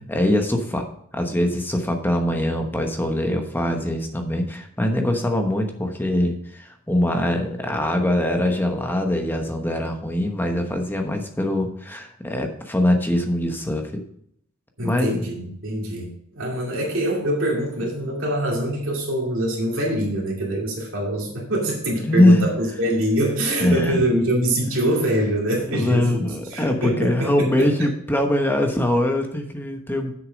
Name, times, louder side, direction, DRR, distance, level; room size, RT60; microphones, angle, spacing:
voice 1, 0.1-0.9 1.1-14.0 14.8-15.2 22.0-22.5 23.6-24.1 25.7-30.1, left 1 dB, 10° left, 4 dB, 1.0 m, -22 dB
voice 2, 14.8-27.9, right 1 dB, 60° right, -2 dB, 2.4 m, -24 dB
8.1 x 6.7 x 5.2 m, 0.67 s
head